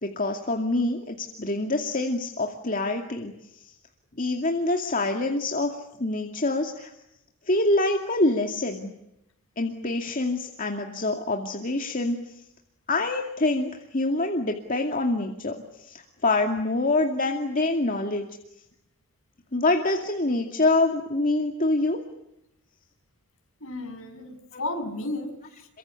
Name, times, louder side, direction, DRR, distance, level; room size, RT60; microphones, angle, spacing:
voice 1, 0.0-3.3 4.2-6.9 7.5-8.9 9.6-12.2 12.9-18.2 19.5-22.0 24.5-24.6, left 2 dB, 40° left, 2 dB, 2.4 m, -26 dB
voice 2, 23.6-25.7, left 2 dB, 60° left, 6 dB, 6.6 m, -34 dB
28.0 x 24.5 x 8.4 m, 0.84 s
head